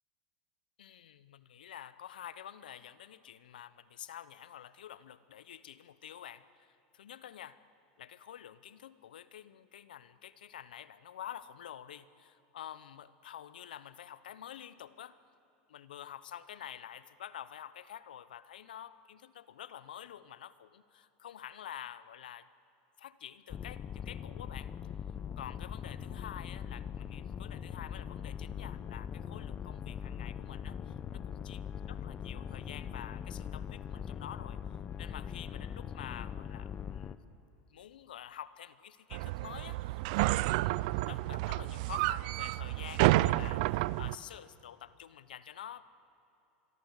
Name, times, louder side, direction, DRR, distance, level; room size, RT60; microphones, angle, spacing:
voice 1, 0.8-7.6 8.0-15.2 15.7-22.5 23.0-24.7 25.4-34.6 35.0-37.1 37.7-45.8, left 10 dB, 90° left, 16 dB, 0.9 m, -48 dB
sound 1, 23.5-37.2, left 8 dB, 30° left, 0.9 m, -41 dB
sound 2, 39.1-44.2, right 19 dB, 65° right, 0.5 m, -30 dB
24.5 x 23.0 x 8.2 m, 2.8 s
hypercardioid pair, 105°, 5 cm